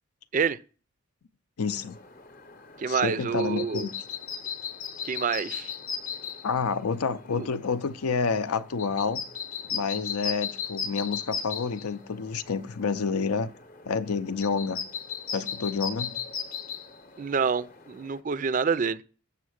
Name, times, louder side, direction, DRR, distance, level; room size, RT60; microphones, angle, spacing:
voice 1, 1.6-2.0 2.9-3.9 6.4-9.2 9.7-13.5 13.9-14.8 15.3-16.1, left 5 dB, 85° left, 0.6 m, -29 dB
sound 1, 1.6-18.2, left 7 dB, 40° left, 0.8 m, -38 dB
voice 2, 2.8-3.9 5.0-5.7 7.3-7.5 17.2-19.0, right 5 dB, 35° right, 0.3 m, -27 dB
7.3 x 5.8 x 6.3 m
head